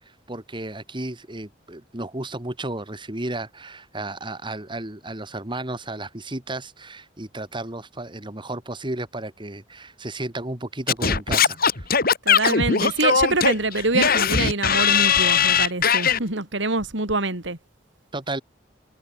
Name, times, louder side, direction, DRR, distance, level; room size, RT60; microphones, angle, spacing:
voice 1, 0.0-11.9 18.1-18.4, right 2 dB, 25° right, 2.6 m, -33 dB
Singing / Scratching (performance technique), 10.9-16.2, left 6 dB, 50° left, 3.5 m, -19 dB
voice 2, 12.2-17.6, right 3 dB, 70° right, 3.6 m, -25 dB
head